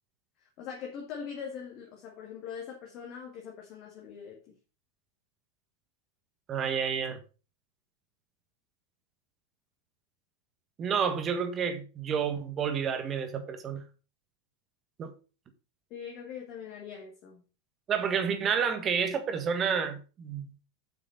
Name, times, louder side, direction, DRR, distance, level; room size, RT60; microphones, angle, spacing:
voice 1, 0.4-4.6 15.9-17.4, left 7 dB, 40° left, 1.9 m, -42 dB
voice 2, 6.5-7.2 10.8-13.8 15.0-15.1 17.9-20.5, right 6 dB, 25° right, 1.5 m, -30 dB
8.0 x 5.8 x 5.1 m
figure-of-eight pair, 90°, 0 cm